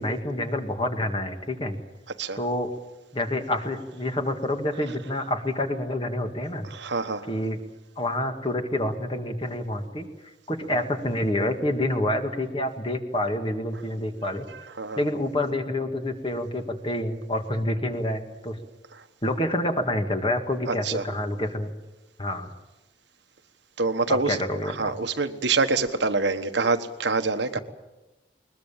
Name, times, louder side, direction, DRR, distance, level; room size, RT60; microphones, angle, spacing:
voice 1, 0.0-1.8 2.4-2.7 3.1-6.7 7.3-7.6 8.0-10.1 10.5-14.5 15.0-18.6 19.2-21.7 22.2-22.5 24.1-24.9 27.6-27.7, left 1 dB, 30° left, 6 dB, 1.9 m, -28 dB
voice 2, 6.7-7.3 10.7-10.8 14.8-15.0 20.7-21.0 23.8-24.4 24.6-27.6, right 3 dB, 70° right, 9 dB, 1.3 m, -26 dB
21.5 x 21.0 x 7.4 m, 1.1 s
head